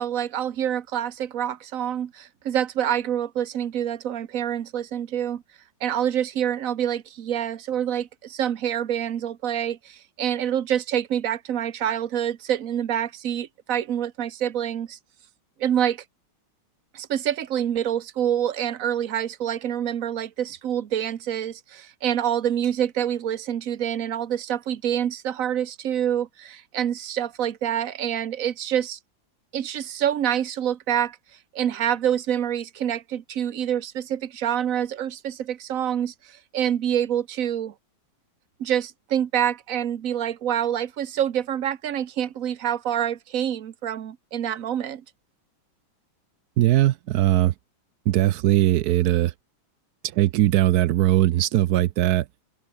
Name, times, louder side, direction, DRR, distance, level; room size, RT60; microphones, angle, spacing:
voice 1, 0.0-5.4 5.8-15.0 15.6-16.0 16.9-29.0 29.5-31.2 31.5-37.7 38.6-45.0, right 10 dB, 50° right, 1.2 m, -26 dB
voice 2, 46.6-47.5 48.1-49.3 50.1-52.3, right 14 dB, 75° right, 0.9 m, -20 dB
omnidirectional pair, 2.2 m